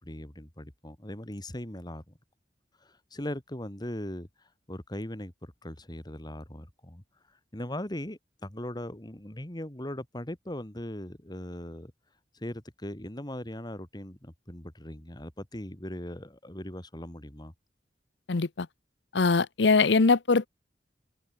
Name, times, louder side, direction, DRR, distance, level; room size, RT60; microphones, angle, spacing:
voice 1, 0.0-2.1 2.8-4.3 4.7-7.0 7.5-11.9 12.3-17.5, left 1 dB, 25° left, 2.3 m, -39 dB
voice 2, 18.3-18.7 19.1-20.5, left 4 dB, 85° left, 0.8 m, -22 dB
open air
head